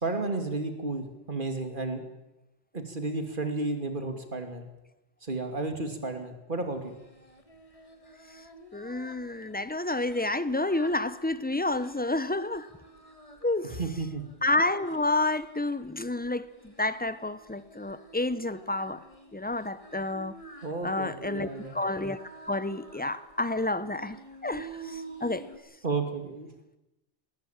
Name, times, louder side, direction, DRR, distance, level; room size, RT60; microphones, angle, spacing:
voice 1, 0.0-2.0 2.7-4.6 5.2-7.0 13.7-14.2 20.6-21.8 25.8-26.5, right 3 dB, 45° right, 2.9 m, -32 dB
Singing, 6.8-25.6, right 3 dB, 30° left, 2.8 m, -50 dB
voice 2, 8.7-12.7 13.4-13.8 14.4-19.0 19.3-20.4 20.8-22.2 22.5-25.4, left 2 dB, 10° left, 0.8 m, -30 dB
20.0 x 19.0 x 8.9 m
omnidirectional pair, 1.2 m